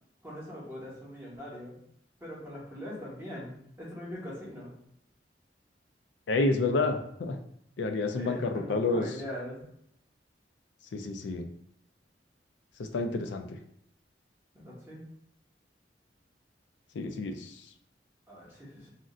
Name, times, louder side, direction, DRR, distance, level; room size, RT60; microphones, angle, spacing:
voice 1, 0.2-1.8 2.2-4.7 8.1-9.6 14.5-15.0 18.3-18.9, equal, 15° right, -6 dB, 1.0 m, -41 dB
voice 2, 6.3-7.4 7.8-9.1 10.9-11.4 12.9-13.6 17.0-17.3, left 3 dB, 80° left, 6 dB, 0.4 m, -29 dB
2.4 x 2.1 x 3.7 m, 0.70 s
head